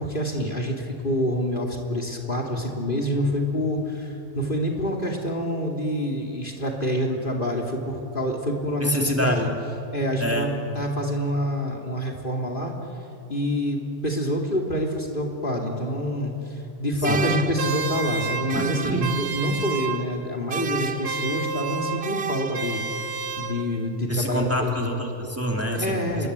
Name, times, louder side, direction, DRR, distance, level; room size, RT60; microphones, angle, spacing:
voice 1, 0.0-9.5 9.9-10.5 10.7-12.7 13.3-24.7 25.7-26.3, equal, 45° left, 1 dB, 3.1 m, -27 dB
voice 2, 8.8-9.4 10.2-10.6 17.1-17.3 18.5-19.1 24.1-26.3, equal, 10° right, 1 dB, 2.9 m, -26 dB
sound 1, 17.0-20.2 20.5-23.9, right 5 dB, 55° right, 1.2 m, -30 dB
28.5 x 23.0 x 8.3 m, 2.9 s
omnidirectional pair, 1.3 m